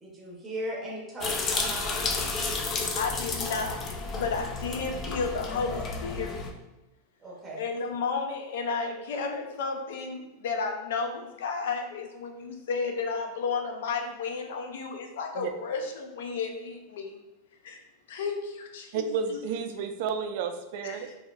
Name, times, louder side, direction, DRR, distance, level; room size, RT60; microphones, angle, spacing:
voice 1, 0.0-2.6 7.2-7.7, right 1 dB, 10° right, -4 dB, 0.7 m, -38 dB
sound 1, 1.2-6.5, left 4 dB, 20° left, 0.3 m, -32 dB
voice 2, 2.9-3.8 4.1-6.4 7.6-17.2 17.6-17.8 18.1-19.4 20.8-21.1, left 4 dB, 80° left, 5 dB, 0.6 m, -32 dB
voice 3, 18.9-21.1, right 6 dB, 50° right, 6 dB, 0.4 m, -31 dB
4.1 x 2.8 x 2.4 m, 0.96 s
supercardioid pair, 170°, 0 cm